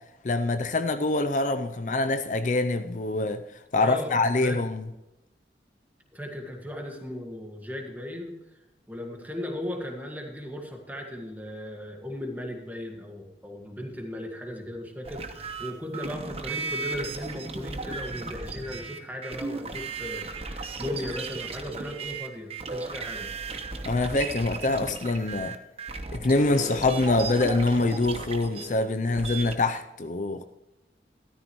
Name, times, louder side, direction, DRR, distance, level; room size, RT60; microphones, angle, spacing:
voice 1, 0.2-3.4 3.7-4.8 23.9-25.6 26.1-30.4, left 2 dB, 45° left, 0.5 m, -25 dB
voice 2, 3.8-4.6 6.1-8.4 8.9-23.3, left 1 dB, 10° right, 1.8 m, -37 dB
sound 1, 15.1-29.6, right 3 dB, 35° right, 1.0 m, -36 dB
13.5 x 13.5 x 3.1 m
head